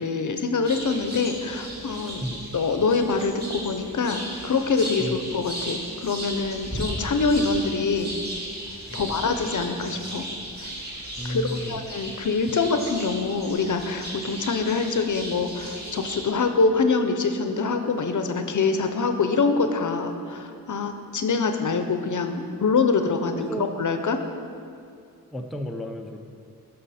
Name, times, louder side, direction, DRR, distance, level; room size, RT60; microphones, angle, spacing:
voice 1, 0.0-2.2 2.5-8.1 8.9-10.3 10.6-10.7 11.3-23.5 23.8-24.2, left 4 dB, 60° left, 7 dB, 0.7 m, -25 dB
sound 1, 0.6-16.3, right 1 dB, 25° right, 2.4 m, -36 dB
voice 2, 8.9-9.2 11.2-11.8 23.3-23.7 25.3-26.2, equal, ahead, 3 dB, 0.5 m, -33 dB
13.0 x 5.5 x 4.2 m, 2.4 s
wide cardioid pair, 120°, 35 cm